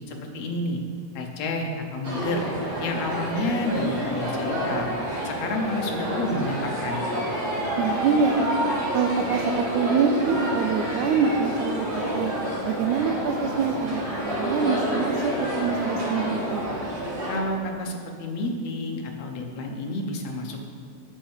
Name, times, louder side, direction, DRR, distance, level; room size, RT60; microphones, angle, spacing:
voice 1, 0.1-0.8 1.2-2.5 2.8-4.9 5.2-7.1 17.3-20.6, left 2 dB, 70° left, 2 dB, 2.1 m, -30 dB
sound 1, 2.0-17.4, equal, 60° right, 3.7 m, -29 dB
voice 2, 7.8-8.6 8.9-12.3 12.7-16.7, right 6 dB, 85° right, 5 dB, 2.0 m, -25 dB
8.7 x 7.3 x 6.5 m, 2.2 s
omnidirectional pair, 3.3 m